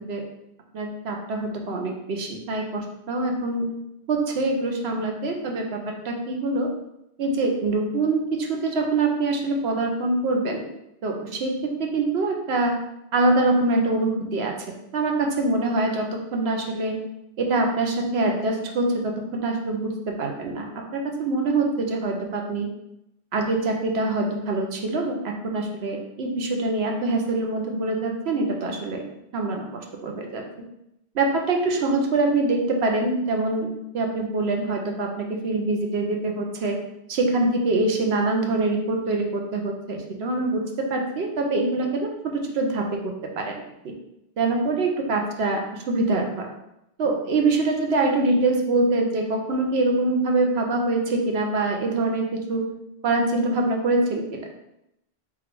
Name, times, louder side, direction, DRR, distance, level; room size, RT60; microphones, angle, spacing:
voice 1, 0.7-3.7 4.1-5.8 6.0-6.7 7.2-10.7 11.0-11.5 11.8-12.7 13.1-14.5 14.9-16.1 16.3-16.9 17.4-20.6 20.9-22.7 23.3-29.0 29.3-30.4 31.1-33.7 33.9-36.8 37.1-42.8 43.4-43.5 44.4-46.5 47.0-52.6 53.0-54.2, right 2 dB, 80° right, 2 dB, 1.0 m, -24 dB
3.6 x 2.4 x 4.5 m, 0.84 s
omnidirectional pair, 1.1 m